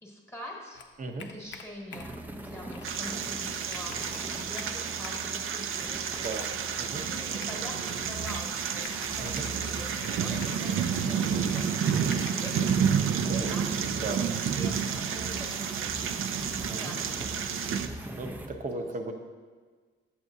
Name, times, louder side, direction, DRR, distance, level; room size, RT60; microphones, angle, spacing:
voice 1, 0.0-0.8 1.2-6.2 7.0-16.0 16.7-17.4 18.7-19.1, equal, 10° left, -1 dB, 1.2 m, -45 dB
Computer keyboard, 0.7-2.3 2.7-3.0 3.4-3.5 3.7-5.3 6.1-6.6 7.4-8.5 8.8-10.7 11.5-12.7, left 5 dB, 60° left, 0.6 m, -46 dB
sound 1, 1.9-18.5, right 2 dB, 10° right, 0.5 m, -42 dB
sound 2, 2.8-17.9, right 7 dB, 80° right, 0.4 m, -30 dB
voice 2, 9.2-9.5 13.2-13.6 14.0-14.2 16.7-17.0 18.2-19.1, right 3 dB, 40° right, 4 dB, 0.7 m, -36 dB
8.3 x 7.1 x 2.6 m, 1.5 s
cardioid pair, 105°, 21 cm